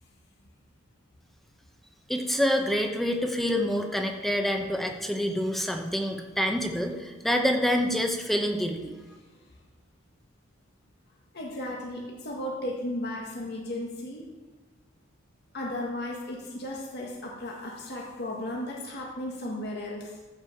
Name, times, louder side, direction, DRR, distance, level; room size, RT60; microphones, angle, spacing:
voice 1, 2.1-8.9, equal, ahead, 3 dB, 1.0 m, -27 dB
voice 2, 11.3-14.2 15.5-20.2, left 1 dB, 55° left, -3 dB, 1.7 m, -35 dB
14.5 x 5.5 x 7.1 m, 1.3 s
head